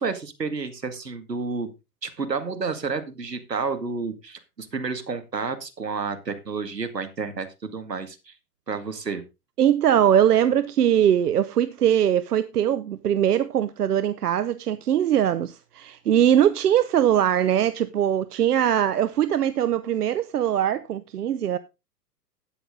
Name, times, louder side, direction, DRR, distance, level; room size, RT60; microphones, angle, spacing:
voice 1, 0.0-1.7 2.0-8.3 8.7-9.2, right 4 dB, 90° right, 2.2 m, -30 dB
voice 2, 9.6-21.6, right 10 dB, 70° right, 0.8 m, -21 dB
12.5 x 9.2 x 3.8 m
figure-of-eight pair, 115°, 48 cm